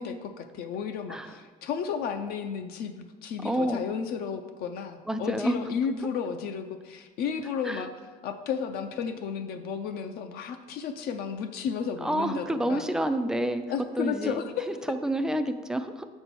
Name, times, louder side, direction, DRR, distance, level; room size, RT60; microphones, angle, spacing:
voice 1, 0.0-7.9 8.2-12.9 13.7-14.7, left 6 dB, 60° left, 7 dB, 0.5 m, -33 dB
voice 2, 3.4-3.8 5.1-5.6 7.6-7.9 12.0-13.6 14.0-14.4 14.7-16.1, right 1 dB, 5° right, 8 dB, 0.3 m, -29 dB
6.9 x 4.4 x 6.8 m, 1.4 s
cardioid pair, 160°, 18 cm